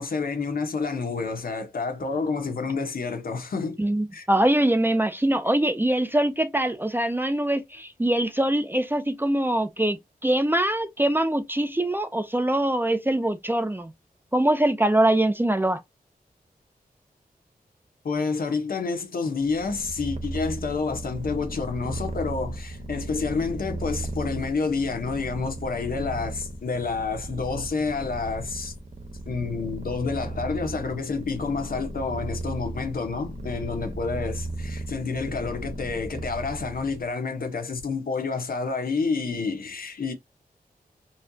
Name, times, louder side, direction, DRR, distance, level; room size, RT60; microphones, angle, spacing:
voice 1, 0.0-3.8 4.1-4.3 18.0-28.7 29.3-40.1, left 4 dB, 65° left, 0.9 m, -29 dB
voice 2, 3.8-13.9 14.3-15.8, right 1 dB, 15° right, 0.5 m, -23 dB
Purr, 19.4-37.1, right 1 dB, 50° right, 0.8 m, -36 dB
4.2 x 2.3 x 2.7 m
wide cardioid pair, 110°, 16 cm